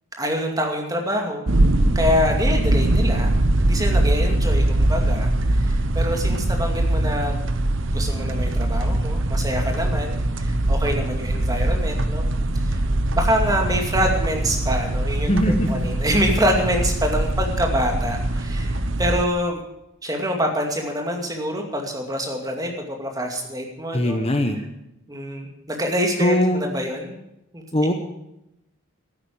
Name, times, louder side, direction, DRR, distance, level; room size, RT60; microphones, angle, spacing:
voice 1, 0.2-1.5 1.9-3.3 3.7-7.4 7.9-12.3 12.6-12.8 13.1-19.6 20.0-24.2 25.1-27.2 27.5-27.6, equal, 15° right, 2 dB, 2.3 m, -26 dB
sound 1, 1.5-19.2, right 1 dB, 65° right, 1.0 m, -22 dB
voice 2, 15.3-15.7 23.9-24.6 26.2-26.6 27.7-27.9, equal, 30° left, 6 dB, 1.0 m, -20 dB
13.0 x 10.0 x 8.5 m, 0.86 s
head